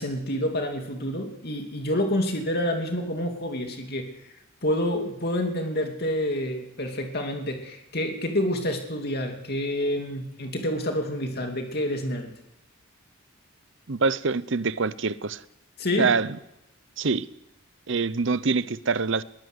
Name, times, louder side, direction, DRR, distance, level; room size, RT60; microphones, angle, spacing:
voice 1, 0.0-4.1 4.6-12.3 15.8-16.1, left 1 dB, 45° left, 2.7 m, -28 dB
voice 2, 13.9-15.4 16.0-16.4 17.0-17.3 17.9-19.2, right 4 dB, 60° right, 0.7 m, -25 dB
21.5 x 19.5 x 8.1 m
head